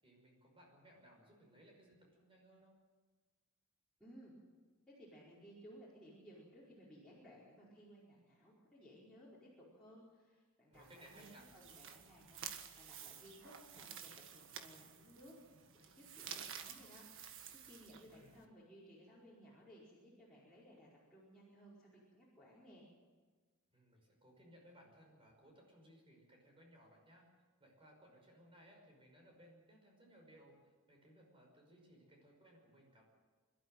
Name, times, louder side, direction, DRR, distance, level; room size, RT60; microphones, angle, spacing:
voice 1, 0.0-2.7 10.7-11.4 18.0-18.4 23.7-27.2 27.6-30.5 30.9-33.0, equal, 25° right, 0 dB, 5.6 m, -63 dB
voice 2, 4.0-4.3 4.9-15.4 15.7-17.4 17.6-22.8, equal, 5° left, -9 dB, 5.0 m, -60 dB
sound 1, 10.7-18.5, right 8 dB, 60° right, 1.6 m, -52 dB
27.0 x 13.0 x 9.2 m, 1.4 s
head